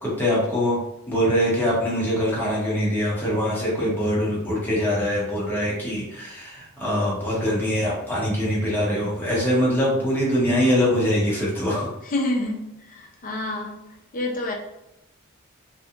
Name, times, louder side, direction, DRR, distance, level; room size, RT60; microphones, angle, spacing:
voice 1, 0.0-0.8 1.1-12.0, equal, 10° left, -7 dB, 0.9 m, -23 dB
voice 2, 12.1-13.8 14.1-14.5, left 2 dB, 40° left, 1 dB, 0.5 m, -28 dB
2.7 x 2.3 x 2.4 m, 0.86 s
head